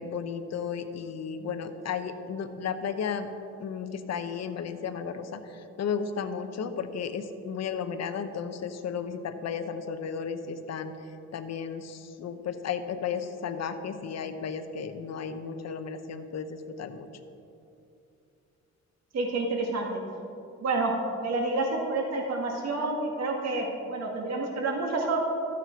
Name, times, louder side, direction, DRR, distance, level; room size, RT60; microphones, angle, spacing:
voice 1, 0.0-3.3 3.6-17.1, left 6 dB, 60° left, 9 dB, 0.9 m, -34 dB
voice 2, 19.1-20.0 20.6-20.9 21.2-25.2, right 2 dB, 60° right, 0 dB, 2.1 m, -29 dB
13.0 x 8.5 x 4.6 m, 2.7 s
cardioid pair, 90°, 30 cm